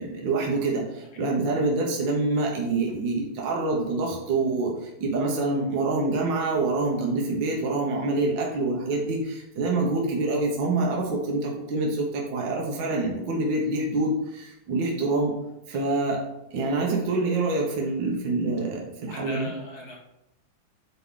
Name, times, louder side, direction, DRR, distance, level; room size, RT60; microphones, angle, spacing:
voice 1, 0.0-4.7 5.0-15.3 15.7-16.2 16.5-19.5, right 2 dB, 60° right, -2 dB, 1.8 m, -26 dB
voice 2, 19.1-20.0, equal, 50° left, -1 dB, 1.9 m, -38 dB
8.5 x 4.8 x 3.8 m, 0.87 s
omnidirectional pair, 2.4 m